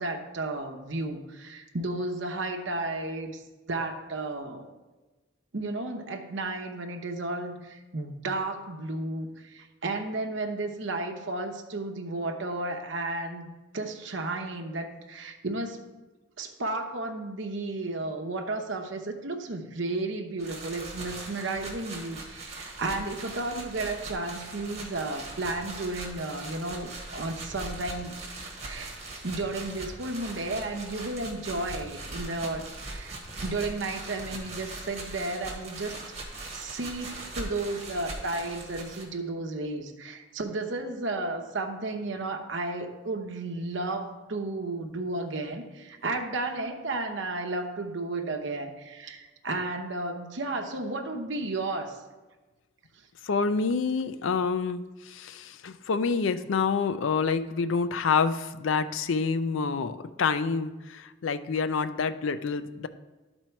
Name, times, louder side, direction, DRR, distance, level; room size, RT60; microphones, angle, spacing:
voice 1, 0.0-3.4 3.7-4.7 5.5-13.5 13.7-15.8 16.4-28.3 28.6-29.0 29.2-36.0 36.5-52.0, right 2 dB, 70° right, 4 dB, 0.8 m, -33 dB
sound 1, 20.4-39.0, right 2 dB, 35° right, 1.5 m, -40 dB
voice 2, 53.2-62.9, left 5 dB, 80° left, 12 dB, 0.5 m, -27 dB
12.0 x 4.4 x 4.5 m, 1.2 s
head